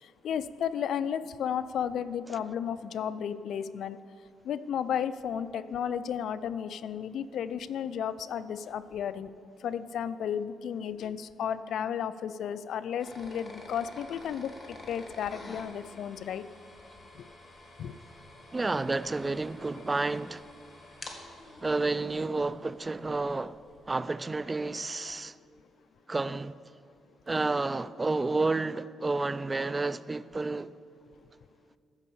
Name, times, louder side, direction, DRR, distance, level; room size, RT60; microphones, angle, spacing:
voice 1, 0.0-4.0 4.4-9.3 9.6-16.5 17.2-17.3 17.8-18.0, left 8 dB, 70° left, 0.4 m, -33 dB
sound 1, 13.0-23.8, left 2 dB, 30° left, 1.8 m, -49 dB
voice 2, 18.5-20.4 21.6-23.6 23.9-25.4 26.1-26.6 27.3-30.7, right 3 dB, 20° right, 0.3 m, -30 dB
14.0 x 5.3 x 6.8 m
cardioid pair, 90°, 0 cm